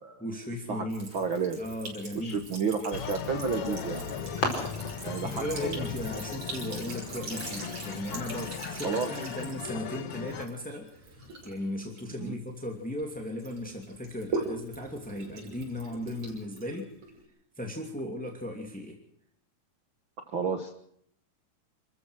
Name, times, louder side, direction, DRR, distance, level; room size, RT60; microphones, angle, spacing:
voice 1, 0.2-1.2 1.5-2.4 5.2-16.9 17.6-19.0, left 1 dB, 5° left, 1 dB, 1.6 m, -37 dB
Sink (filling or washing) / Trickle dribble, 0.9-13.0 13.4-17.2, right 3 dB, 40° right, 6.8 m, -42 dB
voice 2, 1.1-1.6 2.1-4.0 5.0-5.8 8.8-9.1 12.2-12.3 20.3-20.8, right 5 dB, 65° right, 6 dB, 1.2 m, -31 dB
sound 1, 2.9-10.5, left 7 dB, 55° left, 1.7 m, -38 dB
sound 2, 3.5-8.6, left 2 dB, 30° left, 5.2 m, -39 dB
28.5 x 14.5 x 6.4 m, 0.70 s
omnidirectional pair, 4.6 m